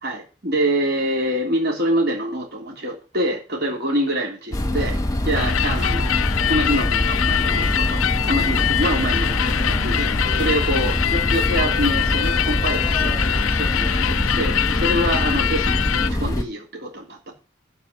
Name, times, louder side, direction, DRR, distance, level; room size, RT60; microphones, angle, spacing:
voice 1, 0.0-5.0 5.2-13.2 13.6-17.3, right 1 dB, 50° right, -2 dB, 3.4 m, -26 dB
sound 1, 4.5-16.4, left 1 dB, 15° left, 1.2 m, -24 dB
sound 2, 5.3-16.1, left 10 dB, 80° left, 0.5 m, -24 dB
sound 3, 5.3-12.7, equal, 25° right, 5.0 m, -38 dB
11.5 x 5.1 x 7.6 m, 0.35 s
head